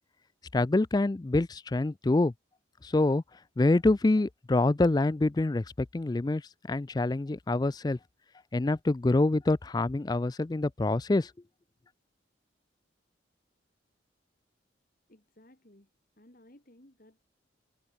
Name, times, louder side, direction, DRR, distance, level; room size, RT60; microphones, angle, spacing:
voice 1, 0.5-2.3 2.8-3.2 3.6-6.4 6.7-8.0 8.5-11.3, left 2 dB, 20° left, 0.3 m, -26 dB
voice 2, 15.1-15.9 16.2-17.2, left 1 dB, 45° left, 2.6 m, -58 dB
head